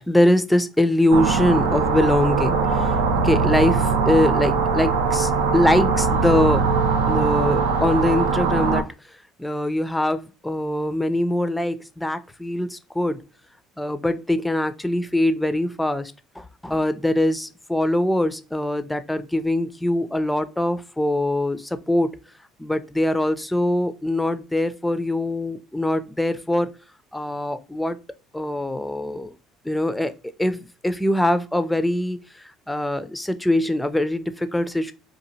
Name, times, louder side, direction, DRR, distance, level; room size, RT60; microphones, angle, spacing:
voice 1, 0.0-3.0 3.2-6.7 7.1-8.8 9.4-13.2 13.8-22.2 22.6-26.7 27.1-28.0 28.3-29.3 29.7-30.1 30.4-32.2 32.7-34.9, left 1 dB, 5° left, 12 dB, 0.4 m, -23 dB
sound 1, 1.1-8.8, right 4 dB, 85° right, 0.4 m, -21 dB
2.8 x 2.5 x 2.7 m, 0.34 s
supercardioid pair, 80°, 0 cm